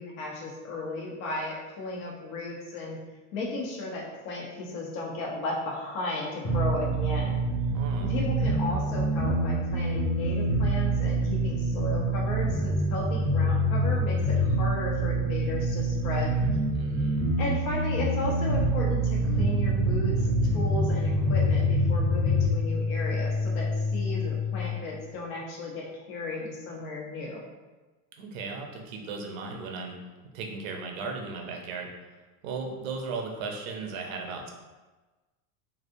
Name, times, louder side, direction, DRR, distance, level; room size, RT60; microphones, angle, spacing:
voice 1, 0.0-3.0 3.3-7.4 8.0-16.4 17.4-20.3 20.5-27.4, left 2 dB, 75° left, -2 dB, 1.0 m, -35 dB
sound 1, 6.4-22.4, right 1 dB, 10° left, 0.3 m, -26 dB
voice 2, 7.7-8.1 16.7-17.3 28.2-31.9 32.4-34.5, right 4 dB, 75° right, 2 dB, 0.7 m, -36 dB
sound 2, 19.2-24.8, left 3 dB, 40° left, 1.1 m, -29 dB
3.3 x 2.6 x 2.6 m, 1.2 s
supercardioid pair, 165°, 41 cm